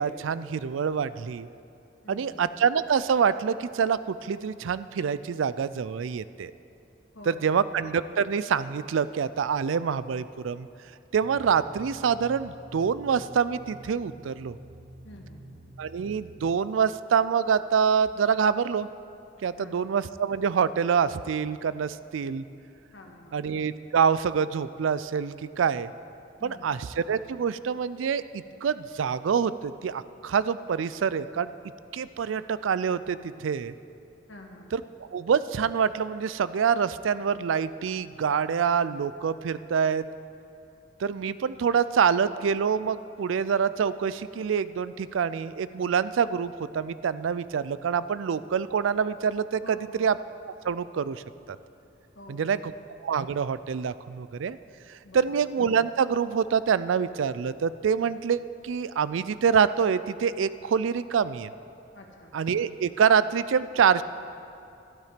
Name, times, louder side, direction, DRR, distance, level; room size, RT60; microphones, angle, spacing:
voice 1, 0.0-1.5 2.1-6.5 7.3-10.7 11.1-14.6 15.8-18.9 19.4-22.4 23.3-25.9 26.4-31.5 31.9-33.7 34.7-34.8 35.1-40.1 41.0-49.6 50.0-50.1 50.6-51.2 51.5-51.6 52.3-52.6 53.0-54.6 55.1-61.5 62.3-64.0, right 6 dB, 85° right, 16 dB, 0.4 m, -26 dB
voice 2, 2.0-2.4 7.1-7.6 15.0-15.6 19.6-19.9 22.9-23.4 26.4-26.8 34.3-34.8 49.6-50.1 52.2-52.8 55.0-55.4 61.9-62.3, left 1 dB, 70° left, 1 dB, 1.7 m, -48 dB
sound 1, 11.2-16.5, right 1 dB, 45° right, 0.9 m, -48 dB
12.0 x 12.0 x 5.1 m, 2.6 s
head